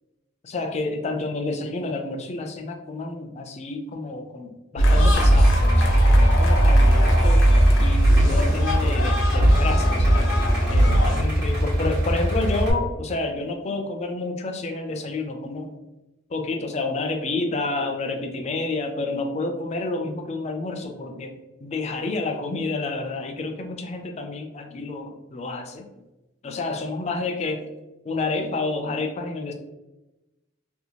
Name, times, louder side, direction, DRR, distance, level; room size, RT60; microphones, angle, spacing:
voice 1, 0.4-7.4 7.8-10.3 10.7-15.7 16.3-21.3 21.6-25.9 26.4-27.7 28.0-29.5, left 3 dB, 35° left, 5 dB, 0.4 m, -29 dB
sound 1, 4.8-11.2, right 1 dB, 85° left, 0.6 m, -18 dB
Idling, 5.1-12.7, equal, 60° right, 0.9 m, -23 dB
2.7 x 2.3 x 2.8 m, 1.0 s
head